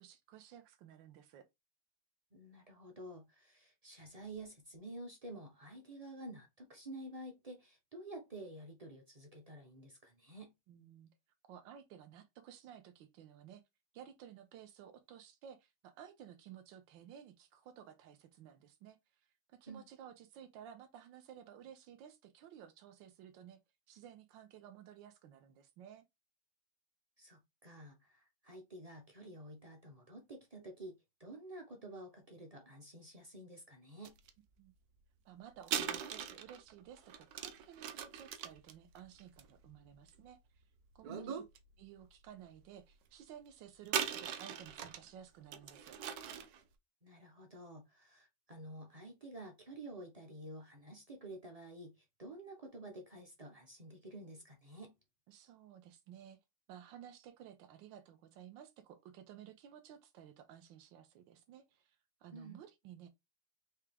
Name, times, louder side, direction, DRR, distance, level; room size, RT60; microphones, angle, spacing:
voice 1, 0.0-1.4 10.7-11.1 11.5-13.6 13.9-23.6 23.9-26.1 34.6-34.7 35.2-40.6 40.9-41.4 41.8-46.0 55.3-56.4 56.7-63.1, right 9 dB, 85° right, 1.5 m, -55 dB
voice 2, 2.3-10.5 19.7-19.9 27.2-34.1 41.1-41.4 47.0-54.9 62.3-62.6, right 1 dB, 45° right, 0.4 m, -50 dB
sound 1, 34.1-34.3 35.6-40.4 41.0-41.6 42.0-42.1 43.9-45.1 45.5-46.6, right 8 dB, 65° right, 1.0 m, -40 dB
4.8 x 2.9 x 3.4 m
omnidirectional pair, 2.0 m